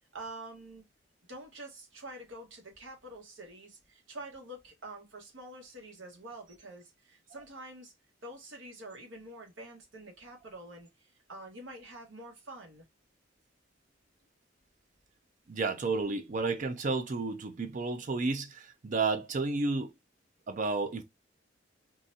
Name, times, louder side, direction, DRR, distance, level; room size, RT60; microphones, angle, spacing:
voice 1, 0.1-0.8 1.3-7.9 8.2-12.8, right 1 dB, 75° right, 1.4 m, -47 dB
voice 2, 15.5-19.9 20.5-21.0, right 3 dB, 40° right, 0.4 m, -31 dB
3.9 x 2.4 x 2.6 m
head